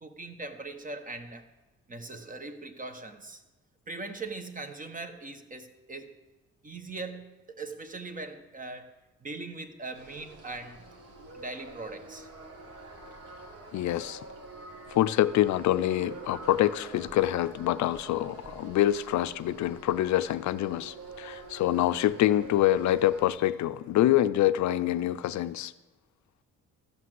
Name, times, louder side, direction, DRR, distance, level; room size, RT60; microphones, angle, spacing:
voice 1, 0.0-1.5 1.9-3.4 3.9-6.1 6.6-8.9 9.2-10.9 11.3-12.3, right 3 dB, 25° right, 1.2 m, -40 dB
sound 1, 9.9-23.3, right 3 dB, 50° right, 1.9 m, -46 dB
voice 2, 13.7-14.2 14.9-25.7, left 13 dB, 70° left, 0.5 m, -26 dB
13.5 x 5.8 x 7.7 m
cardioid pair, 90°, 30 cm